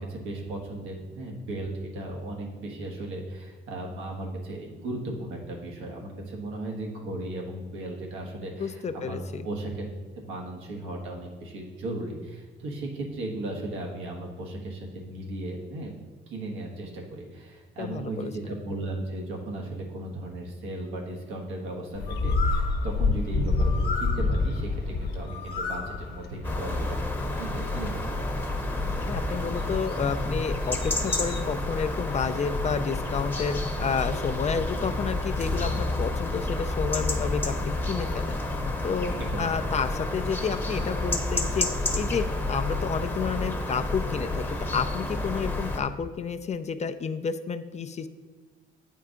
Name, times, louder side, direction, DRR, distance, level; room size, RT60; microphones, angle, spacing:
voice 1, 0.0-9.2 9.4-9.9 10.2-27.0 27.4-28.0 39.2-39.5, right 2 dB, 90° right, 0 dB, 1.3 m, -36 dB
voice 2, 8.6-9.4 17.8-18.3 29.0-38.4 38.8-41.7 41.9-48.1, left 6 dB, 35° left, 10 dB, 0.4 m, -30 dB
Bird, 21.9-31.5, left 3 dB, 55° left, 0.9 m, -29 dB
sound 1, 26.4-45.8, left 2 dB, 10° left, 0.9 m, -30 dB
8.4 x 4.5 x 3.7 m, 1.4 s
cardioid pair, 90°, 20 cm